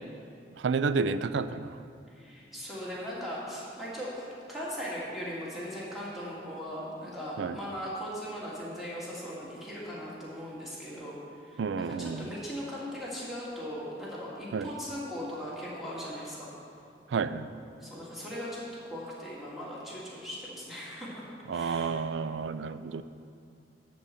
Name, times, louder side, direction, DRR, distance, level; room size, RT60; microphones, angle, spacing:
voice 1, 0.6-1.8 7.4-7.5 11.6-12.2 14.5-14.7 17.1-17.5 21.5-23.0, right 5 dB, 85° right, 13 dB, 0.4 m, -30 dB
voice 2, 2.1-16.5 17.8-21.2 21.5-22.0 22.3-22.7, equal, ahead, -7 dB, 2.1 m, -39 dB
12.0 x 4.2 x 7.7 m, 2.4 s
head